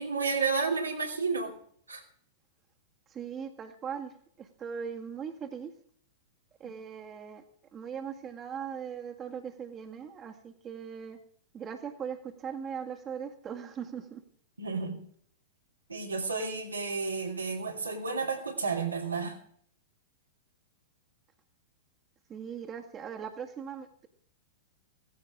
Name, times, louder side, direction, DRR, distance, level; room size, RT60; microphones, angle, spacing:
voice 1, 0.0-1.5 1.9-2.0 14.6-15.0 15.9-19.4, right 4 dB, 85° right, 0 dB, 3.1 m, -31 dB
voice 2, 3.1-5.7 6.6-7.4 7.7-11.2 11.5-14.2 22.3-24.1, right 7 dB, 25° right, 3 dB, 1.9 m, -39 dB
16.5 x 15.5 x 3.8 m, 0.62 s
figure-of-eight pair, 100°, 0 cm